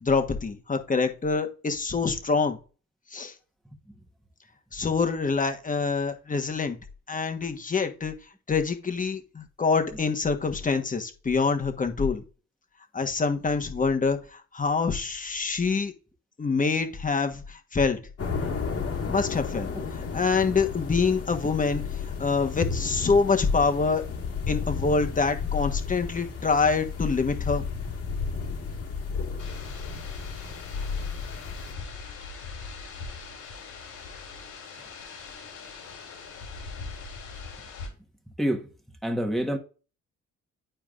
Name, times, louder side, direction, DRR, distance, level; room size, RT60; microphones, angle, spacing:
voice 1, 0.0-2.6 3.1-3.3 4.7-6.8 7.1-8.1 8.5-12.2 12.9-15.9 16.4-18.0 19.1-24.0 24.5-27.6, left 4 dB, 25° left, 1.3 m, -26 dB
sound 1, 18.2-31.7, left 5 dB, 55° left, 1.8 m, -33 dB
voice 2, 19.7-20.1 38.4-38.7 39.0-39.6, equal, ahead, 1.4 m, -28 dB
sound 2, 29.4-37.9, left 4 dB, 90° left, 3.3 m, -41 dB
11.0 x 4.5 x 2.5 m
cardioid pair, 90°, 30 cm